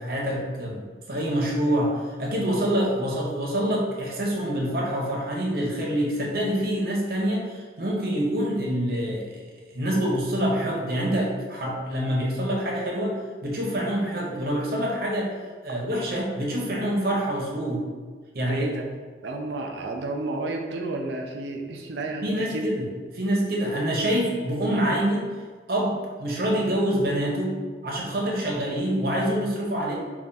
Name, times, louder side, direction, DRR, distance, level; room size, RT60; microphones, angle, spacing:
voice 1, 0.0-9.4 9.7-15.4 15.6-17.8 18.3-18.7 22.2-25.3 25.7-29.9, equal, 55° right, -2 dB, 0.8 m, -26 dB
voice 2, 18.5-18.8 19.2-22.6, right 2 dB, 80° right, 2 dB, 0.4 m, -31 dB
3.4 x 2.4 x 4.0 m, 1.5 s
head